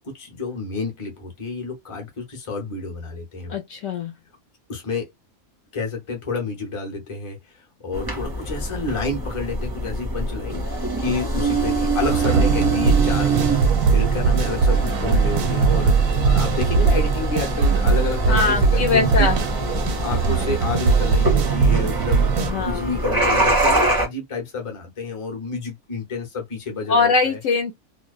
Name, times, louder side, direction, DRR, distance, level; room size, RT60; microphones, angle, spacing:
voice 1, 0.0-3.5 4.7-5.1 5.7-7.4 7.8-13.5 13.9-19.3 20.0-27.4, left 3 dB, 25° left, 0.7 m, -29 dB
voice 2, 3.5-4.1 18.3-19.4 22.4-22.9 26.9-27.7, left 4 dB, 70° left, 0.9 m, -21 dB
sound 1, 7.9-24.1, right 1 dB, 30° right, 0.4 m, -25 dB
sound 2, 12.0-22.5, right 5 dB, 85° right, 1.1 m, -20 dB
2.5 x 2.0 x 2.4 m
omnidirectional pair, 1.6 m